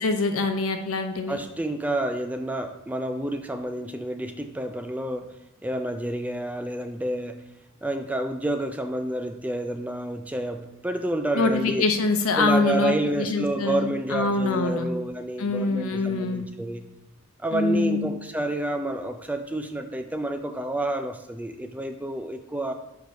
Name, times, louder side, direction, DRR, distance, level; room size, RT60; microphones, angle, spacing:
voice 1, 0.0-1.4 11.4-14.9 15.4-16.5 17.5-18.1, left 3 dB, 80° left, 6 dB, 0.8 m, -25 dB
voice 2, 1.3-5.3 5.6-7.4 7.8-11.8 12.4-16.9 17.4-22.7, right 1 dB, 5° right, 6 dB, 0.3 m, -29 dB
4.8 x 4.7 x 5.8 m, 0.95 s
head